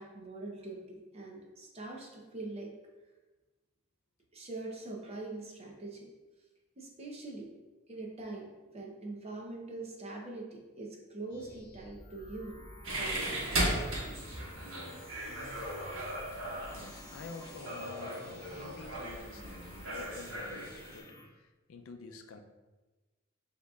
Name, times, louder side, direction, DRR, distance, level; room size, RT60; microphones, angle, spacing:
voice 1, 0.0-2.7 4.3-6.1 6.8-7.5 7.9-8.5 8.7-12.6 13.0-13.4 14.1-14.3, right 2 dB, 30° right, -1 dB, 0.7 m, -43 dB
sound 1, 11.3-21.3, left 1 dB, 20° left, 1.0 m, -52 dB
sound 2, 12.8-21.0, right 1 dB, 80° right, 1.2 m, -37 dB
voice 2, 16.7-22.4, left 4 dB, 90° left, 5 dB, 0.4 m, -49 dB
6.4 x 2.9 x 2.3 m, 1.2 s
head